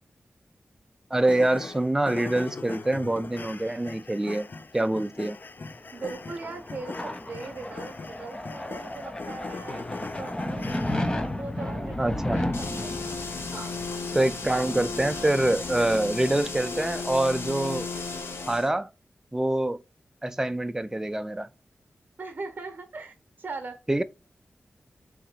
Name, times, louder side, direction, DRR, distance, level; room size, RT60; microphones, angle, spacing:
sound 1, 1.1-11.3, left 4 dB, 50° left, 0.5 m, -41 dB
voice 1, 1.1-4.5 4.7-5.4 12.0-12.4 14.1-17.9 18.5-18.9 19.3-19.8 20.2-21.5 23.9-24.0, right 1 dB, 10° right, 0.4 m, -25 dB
sound 2, 5.8-17.1, left 1 dB, 20° left, 0.7 m, -34 dB
voice 2, 5.9-10.9 11.4-13.1 13.5-13.8 22.2-23.8, right 3 dB, 45° right, 1.0 m, -40 dB
sound 3, 12.5-18.7, left 4 dB, 75° left, 1.0 m, -34 dB
3.7 x 2.9 x 4.8 m
wide cardioid pair, 70°, 4 cm